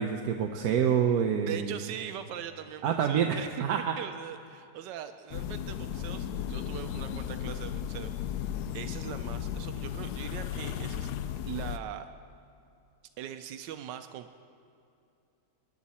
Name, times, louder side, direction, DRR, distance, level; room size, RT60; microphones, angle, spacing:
voice 1, 0.0-1.8 2.8-4.0, right 8 dB, 65° right, 4 dB, 1.1 m, -27 dB
voice 2, 1.4-3.6 4.0-8.1 8.7-11.1 11.5-12.1 13.2-14.4, right 10 dB, 85° right, 9 dB, 1.3 m, -41 dB
sound 1, 5.3-11.8, left 9 dB, 75° left, 1.1 m, -35 dB
21.5 x 11.0 x 4.2 m, 2.6 s
omnidirectional pair, 1.9 m